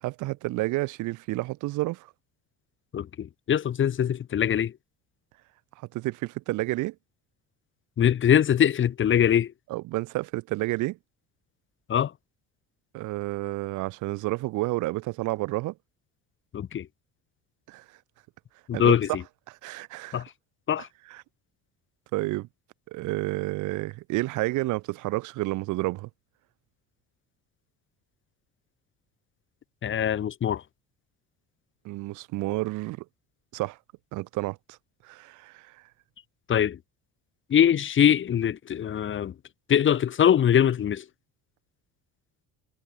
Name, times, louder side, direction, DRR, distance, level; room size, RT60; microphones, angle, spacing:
voice 1, 0.0-2.1 5.9-6.9 9.7-11.0 12.9-15.7 17.7-17.8 18.7-19.0 19.5-20.2 21.1-21.2 22.1-22.5 22.9-26.1 31.8-33.0 33.5-33.8 34.1-34.8 35.0-35.7, right 20 dB, 65° right, 0.7 m, -30 dB
voice 2, 2.9-4.7 8.0-9.5 11.9-12.1 16.5-16.9 18.7-19.2 20.1-20.3 20.7-20.9 29.8-30.6 36.5-36.8 37.5-39.3 39.7-41.0, left 9 dB, 40° left, 1.1 m, -22 dB
cardioid pair, 105°, 32 cm